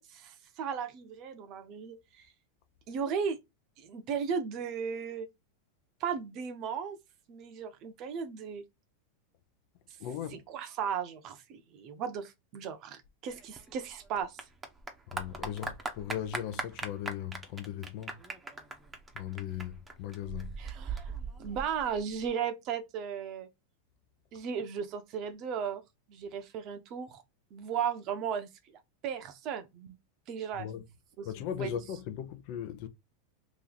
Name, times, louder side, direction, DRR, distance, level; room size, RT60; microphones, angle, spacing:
voice 1, 0.0-2.0 2.9-3.4 3.8-5.3 6.0-7.0 7.3-8.6 10.3-14.4 20.6-21.1 21.4-23.5 24.3-25.8 26.1-27.2 27.5-28.5 29.0-30.0 30.3-30.7 31.2-31.3 31.6-31.7, right 7 dB, 45° right, 0.8 m, -36 dB
voice 2, 10.0-10.4 15.1-18.2 19.1-20.6 30.5-30.9 31.2-32.9, left 10 dB, 55° left, 0.6 m, -38 dB
Clapping / Applause, 13.3-22.3, right 3 dB, 15° right, 0.8 m, -40 dB
3.0 x 2.6 x 3.9 m
hypercardioid pair, 120°, 0 cm